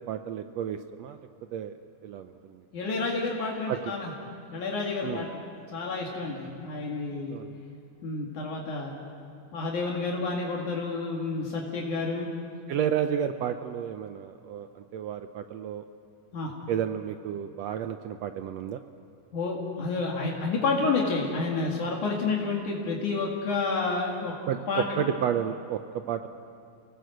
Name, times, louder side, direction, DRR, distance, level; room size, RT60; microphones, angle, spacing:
voice 1, 0.1-1.2 1.5-1.7 2.0-2.6 3.7-3.9 5.0-5.2 7.3-7.6 12.7-15.8 16.7-18.8 24.5-25.8 26.1-26.3, right 9 dB, 80° right, 8 dB, 1.5 m, -31 dB
voice 2, 2.7-4.1 4.5-5.4 5.7-7.4 8.0-8.9 9.5-12.3 16.3-16.5 19.3-24.3 24.7-25.1, left 3 dB, 65° left, -2 dB, 3.5 m, -29 dB
30.0 x 18.0 x 7.9 m, 2.5 s
omnidirectional pair, 3.7 m